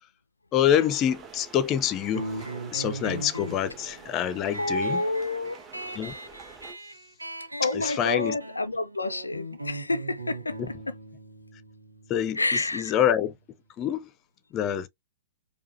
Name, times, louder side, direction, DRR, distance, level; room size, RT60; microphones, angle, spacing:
voice 1, 0.5-2.3 2.7-5.0 6.0-6.1 7.7-8.4 12.1-12.4 12.7-13.3 13.8-14.1 14.5-14.9, left 10 dB, 25° left, 0.6 m, -26 dB
sound 1, 0.7-6.7, right 5 dB, 20° right, 1.2 m, -47 dB
sound 2, 2.1-13.3, right 2 dB, 85° right, 0.9 m, -39 dB
voice 2, 4.6-5.6 7.6-10.9 12.3-12.9, left 2 dB, 80° left, 0.5 m, -29 dB
4.7 x 2.4 x 2.5 m
figure-of-eight pair, 110°, 0 cm